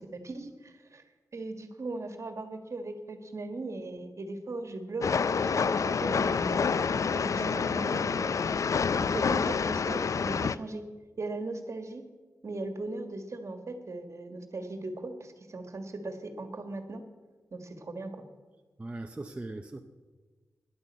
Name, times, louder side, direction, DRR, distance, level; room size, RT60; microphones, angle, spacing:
voice 1, 0.1-1.0 1.3-5.1 5.4-8.4 9.0-10.8 11.2-12.0 12.4-17.0 17.5-18.2, right 2 dB, 55° right, 7 dB, 1.7 m, -38 dB
Train, 5.0-10.5, left 5 dB, 65° left, 0.4 m, -28 dB
voice 2, 18.8-19.8, right 2 dB, 20° right, 4 dB, 0.7 m, -39 dB
10.5 x 10.5 x 8.5 m, 1.3 s
wide cardioid pair, 120°, 6 cm